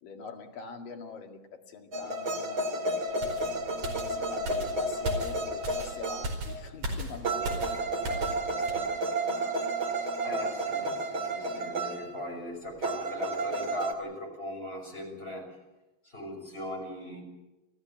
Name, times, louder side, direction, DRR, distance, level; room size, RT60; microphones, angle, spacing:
voice 1, 0.0-3.5 4.1-9.6, left 5 dB, 65° left, 3 dB, 3.7 m, -45 dB
sound 1, 1.9-6.6 7.2-12.1 12.8-13.9, right 2 dB, 40° right, 2.7 m, -32 dB
sound 2, 3.2-8.4 8.7-8.9, right 1 dB, 55° right, 6.3 m, -37 dB
voice 2, 10.2-15.5 16.0-17.2, left 1 dB, 15° left, 1 dB, 6.7 m, -38 dB
29.5 x 14.5 x 9.1 m, 0.98 s
omnidirectional pair, 4.4 m